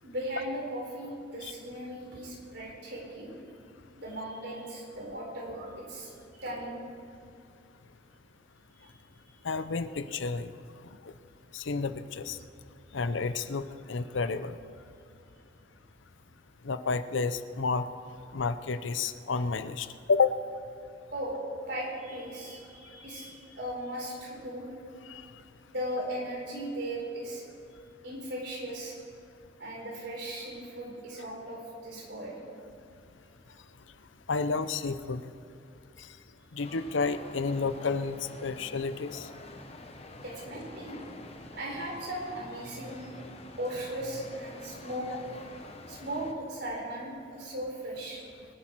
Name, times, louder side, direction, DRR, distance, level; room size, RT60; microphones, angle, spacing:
voice 1, 0.0-3.3 4.0-6.8 21.1-21.4 21.7-24.7 25.7-27.4 28.0-29.0 29.6-32.4 40.2-41.0 41.5-43.1 43.6-45.1 45.9-48.2, right 1 dB, 60° right, -2 dB, 4.2 m, -37 dB
voice 2, 9.4-10.5 11.5-12.4 12.9-14.5 16.6-17.8 18.3-20.4 25.1-25.2 34.3-35.2 36.5-38.2 38.4-39.3, left 4 dB, 80° left, 12 dB, 0.6 m, -30 dB
sound 1, 36.6-46.3, left 2 dB, 35° left, 1.1 m, -47 dB
23.0 x 10.0 x 4.6 m, 2.5 s
head